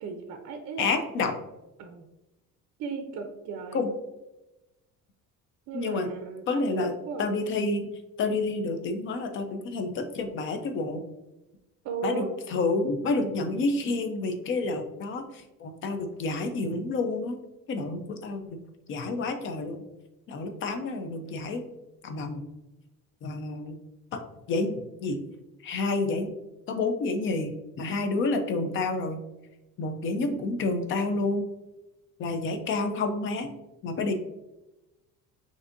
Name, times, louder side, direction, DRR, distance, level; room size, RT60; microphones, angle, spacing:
voice 1, 0.0-0.9 1.8-2.1 2.8-3.8 5.7-6.4 6.7-7.3 11.8-12.3, right 5 dB, 50° right, 5 dB, 0.5 m, -35 dB
voice 2, 0.8-1.3 3.7-3.9 5.7-6.1 6.5-6.9 7.2-7.9 8.2-11.0 12.0-17.4 17.7-18.6 18.9-19.8 20.3-21.6 22.0-22.5 23.2-23.8 24.1-24.2 24.5-24.8 25.0-25.2 25.6-26.3 26.7-29.2 29.8-31.4 32.2-33.5 33.8-34.1, left 3 dB, 40° left, 6 dB, 0.5 m, -29 dB
6.0 x 2.6 x 2.5 m, 0.99 s
cardioid pair, 170°, 33 cm